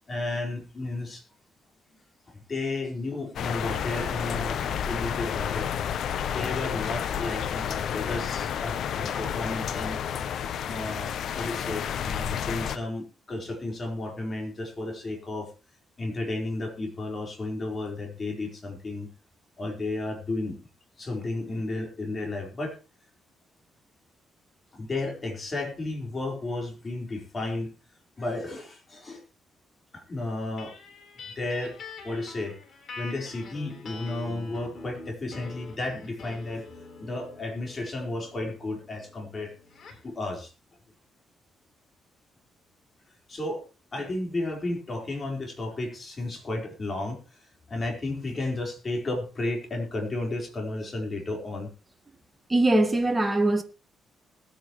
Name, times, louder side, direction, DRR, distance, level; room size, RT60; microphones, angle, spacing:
voice 1, 0.1-1.2 2.5-5.7 6.3-10.0 10.7-15.5 16.0-19.1 19.6-20.6 21.0-22.8 24.7-27.7 28.2-29.2 29.9-30.7 31.4-31.8 32.0-32.6 33.0-36.7 37.0-39.5 40.0-40.5 43.3-43.6 43.9-51.7, left 2 dB, 35° left, 4.4 m, -33 dB
sound 1, 3.4-12.8, left 8 dB, 70° left, 0.9 m, -30 dB
sound 2, 30.6-40.1, left 3 dB, 55° left, 4.1 m, -45 dB
voice 2, 52.5-53.6, right 2 dB, 15° right, 2.0 m, -22 dB
20.5 x 8.9 x 3.2 m
cardioid pair, 90°, 0 cm